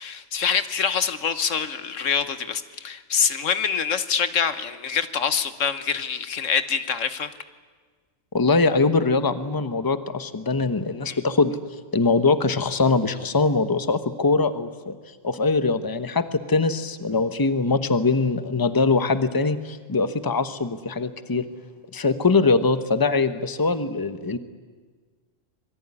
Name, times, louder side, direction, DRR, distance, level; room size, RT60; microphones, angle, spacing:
voice 1, 0.0-7.3 11.1-11.2, left 6 dB, 75° left, 12 dB, 1.5 m, -25 dB
voice 2, 8.3-11.6 11.9-15.0 15.2-21.5 21.9-24.4, left 3 dB, 20° left, 11 dB, 1.0 m, -22 dB
26.5 x 22.0 x 9.9 m, 1.5 s
omnidirectional pair, 1.3 m